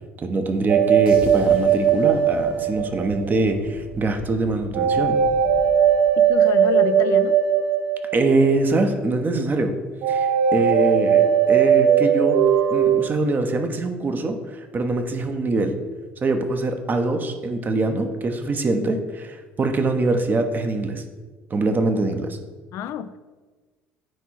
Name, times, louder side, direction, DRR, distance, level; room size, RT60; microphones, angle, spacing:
voice 1, 0.2-5.2 8.1-9.7 10.1-12.4 12.7-15.7 16.2-21.0 21.5-22.4, right 3 dB, 35° right, 6 dB, 1.0 m, -23 dB
sound 1, 0.7-3.4 4.7-8.7 10.0-13.1, right 8 dB, 50° right, 0.4 m, -19 dB
sound 2, 1.1-7.0, right 1 dB, 85° right, 1.3 m, -40 dB
voice 2, 6.2-7.4 22.7-23.2, left 9 dB, 55° left, 13 dB, 0.4 m, -29 dB
9.3 x 3.5 x 4.6 m, 1.3 s
figure-of-eight pair, 60°, 6 cm